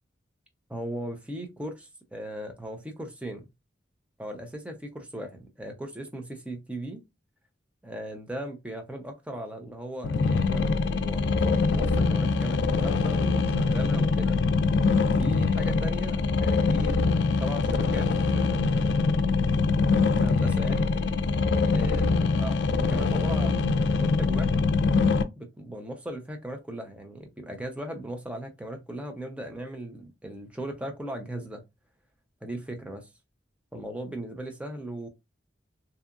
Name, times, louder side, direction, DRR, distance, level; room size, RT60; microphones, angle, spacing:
voice 1, 0.7-3.5 4.2-7.0 7.8-14.4 15.1-16.9 17.4-18.1 18.3-18.7 19.0-19.4 20.1-20.9 21.7-23.7 24.0-24.7 25.4-31.6 32.4-33.1 33.7-35.1, right 1 dB, 5° right, 0.5 m, -38 dB
sound 1, 10.0-25.2, left 4 dB, 65° left, 0.3 m, -24 dB
2.8 x 2.4 x 2.4 m
head